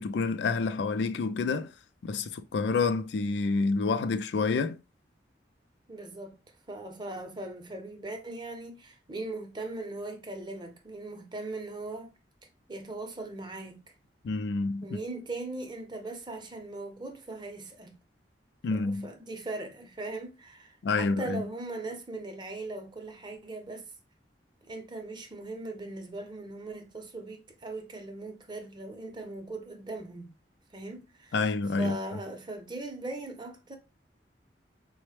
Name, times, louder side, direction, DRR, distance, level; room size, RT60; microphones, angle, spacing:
voice 1, 0.0-1.7 2.0-4.8 14.2-14.8 18.6-19.1 20.8-21.4 31.3-32.0, left 4 dB, 75° left, 0.4 m, -28 dB
voice 2, 5.9-6.4 6.7-12.1 12.7-13.8 14.8-18.0 18.7-23.9 24.7-30.3 30.7-31.4 31.8-33.8, right 2 dB, 25° right, 0.6 m, -39 dB
4.0 x 2.1 x 3.1 m
head